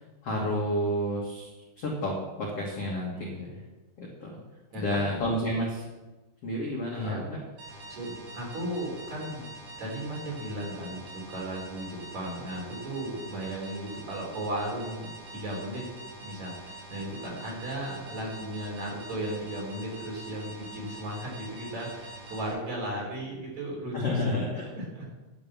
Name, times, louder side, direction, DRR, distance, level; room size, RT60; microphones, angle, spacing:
voice 1, 0.2-1.5 1.8-3.3 4.0-4.4 4.7-5.8 6.4-7.4 23.9-24.7, left 1 dB, 70° left, -3 dB, 1.4 m, -30 dB
voice 2, 3.1-3.6 4.7-5.1 6.9-7.2 7.6-9.5 9.8-15.9 16.2-25.1, right 1 dB, 40° right, -3 dB, 4.2 m, -36 dB
sound 1, 7.6-22.5, right 2 dB, 65° right, 7.3 m, -45 dB
11.0 x 7.2 x 7.3 m, 1.1 s
omnidirectional pair, 5.5 m